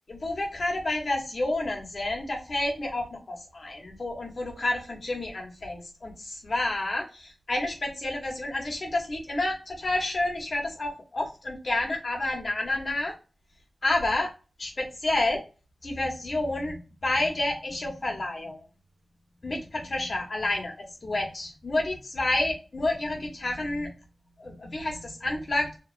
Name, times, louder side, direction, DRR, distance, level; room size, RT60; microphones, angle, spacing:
voice 1, 0.1-13.1 13.8-14.3 14.6-15.4 15.8-18.6 19.4-23.9 24.4-25.8, left 2 dB, 45° left, 0 dB, 0.9 m, -29 dB
2.9 x 2.3 x 2.4 m, 0.33 s
wide cardioid pair, 135°, 0 cm